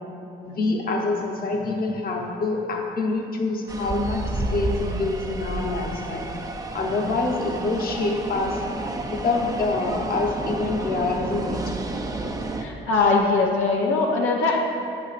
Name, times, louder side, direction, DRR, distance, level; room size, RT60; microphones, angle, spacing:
voice 1, 0.4-6.3 6.7-8.6 9.1-11.6, left 3 dB, 50° left, 1 dB, 1.0 m, -26 dB
sound 1, 3.7-12.7, right 2 dB, 20° right, 0.5 m, -31 dB
voice 2, 12.6-14.6, left 3 dB, 90° left, 0 dB, 0.7 m, -21 dB
8.4 x 7.7 x 2.5 m, 2.9 s
cardioid pair, 90°, 20 cm